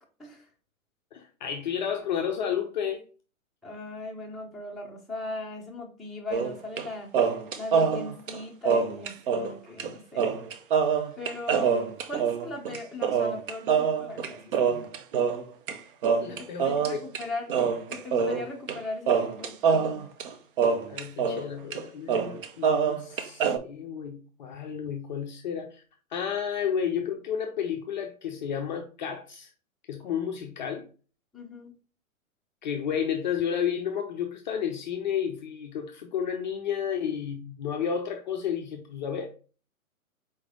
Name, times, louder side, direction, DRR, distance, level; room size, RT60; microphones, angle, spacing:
voice 1, 1.1-3.0 16.2-17.0 20.9-25.8 26.1-29.5 29.9-30.9 32.6-39.3, left 8 dB, 35° left, 0.5 m, -31 dB
voice 2, 3.6-7.1 7.6-10.3 11.2-14.5 16.3-17.6 17.9-20.0 31.3-31.7, left 2 dB, ahead, 0.7 m, -38 dB
sound 1, 6.3-6.9 7.1-9.5 9.8-9.9 10.2-15.8 16.0-17.2 17.5-18.8 19.1-21.4 21.7-21.8 22.1-23.6, right 6 dB, 40° right, 0.6 m, -25 dB
4.3 x 3.1 x 3.6 m
hypercardioid pair, 125°, 43 cm